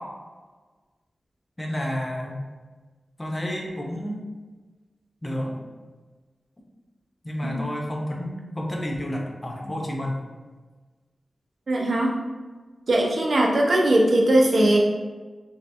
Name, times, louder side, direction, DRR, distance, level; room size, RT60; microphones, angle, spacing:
voice 1, 1.6-2.4 3.2-4.2 5.2-5.5 7.2-10.1, equal, 20° left, -1 dB, 0.7 m, -30 dB
voice 2, 11.7-12.1 12.9-14.8, right 1 dB, 60° right, -2 dB, 0.8 m, -20 dB
4.1 x 2.9 x 3.4 m, 1.3 s
wide cardioid pair, 110°, 0 cm